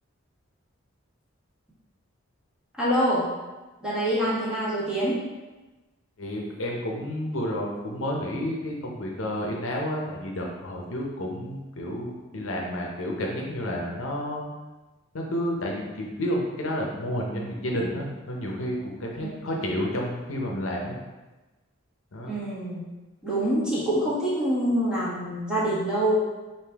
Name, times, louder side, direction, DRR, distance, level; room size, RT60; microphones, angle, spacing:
voice 1, 2.8-3.3 3.8-5.2 19.2-19.4 22.3-22.8 23.2-26.2, equal, 5° right, -10 dB, 1.4 m, -25 dB
voice 2, 6.2-14.5 15.1-21.0 22.1-22.4, equal, 75° left, -1 dB, 0.7 m, -30 dB
5.1 x 2.6 x 3.4 m, 1.2 s
head